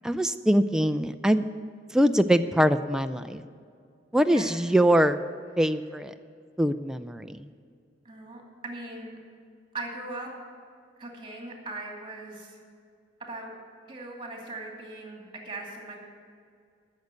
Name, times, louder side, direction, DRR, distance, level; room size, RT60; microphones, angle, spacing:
voice 1, 0.0-1.5 1.9-3.4 4.1-5.2 5.6-6.1 6.6-7.5, equal, 5° right, 8 dB, 0.4 m, -23 dB
voice 2, 4.3-4.6 8.0-9.2 9.7-10.3 11.0-12.6 13.3-13.5 13.9-16.0, right 2 dB, 25° right, 0 dB, 2.6 m, -39 dB
13.0 x 6.7 x 8.2 m, 2.3 s
head